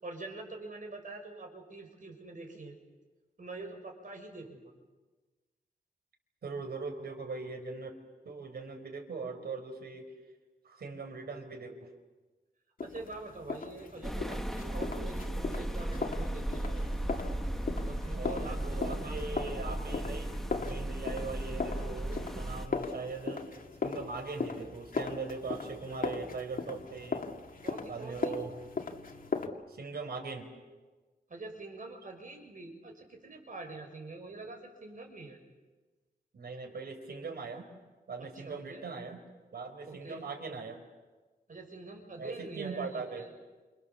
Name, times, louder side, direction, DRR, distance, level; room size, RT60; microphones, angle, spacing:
voice 1, 0.0-2.7 3.4-4.7 12.8-16.8 17.8-19.5 27.6-28.4 31.3-35.4 38.2-38.8 39.9-40.2 41.5-43.3, right 3 dB, 55° right, 3 dB, 6.3 m, -45 dB
voice 2, 6.4-8.0 8.2-10.1 10.6-11.9 18.1-23.4 23.8-27.3 27.9-28.5 29.7-30.5 36.3-37.7 38.1-39.2 39.5-40.8 42.2-43.3, right 4 dB, 90° right, 5 dB, 4.7 m, -40 dB
sound 1, 12.8-29.5, left 4 dB, 60° left, 2.5 m, -38 dB
sound 2, 14.0-22.7, right 1 dB, ahead, 1.4 m, -36 dB
29.0 x 28.5 x 7.1 m, 1.3 s
wide cardioid pair, 105°, 16 cm